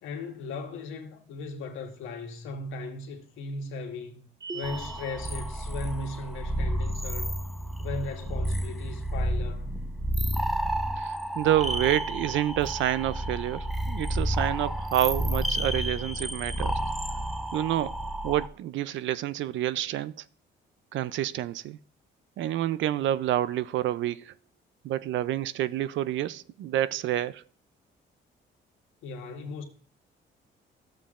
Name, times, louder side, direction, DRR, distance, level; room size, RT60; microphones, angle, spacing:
voice 1, 0.0-7.3 7.8-9.7 29.0-29.6, left 3 dB, 85° left, 1.4 m, -37 dB
sound 1, 4.4-5.3, right 4 dB, 20° right, 1.9 m, -39 dB
sound 2, 4.6-18.5, right 1 dB, ahead, 0.6 m, -31 dB
voice 2, 11.0-16.8 17.5-18.0 18.2-20.2 20.9-21.8 22.4-24.3 24.8-27.4, right 12 dB, 70° right, 0.4 m, -28 dB
13.0 x 7.3 x 2.4 m
cardioid pair, 90°, 20 cm